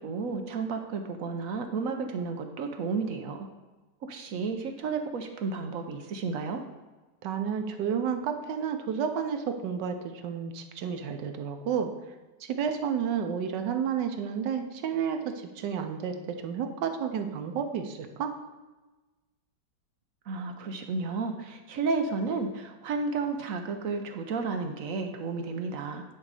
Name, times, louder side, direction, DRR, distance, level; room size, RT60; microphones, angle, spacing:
voice 1, 0.0-3.5 4.0-6.6 20.3-26.0, right 4 dB, 65° right, 5 dB, 0.9 m, -32 dB
voice 2, 7.2-11.9 12.4-18.3, right 7 dB, 85° right, 6 dB, 1.4 m, -31 dB
9.8 x 3.9 x 4.8 m, 1.2 s
omnidirectional pair, 1.9 m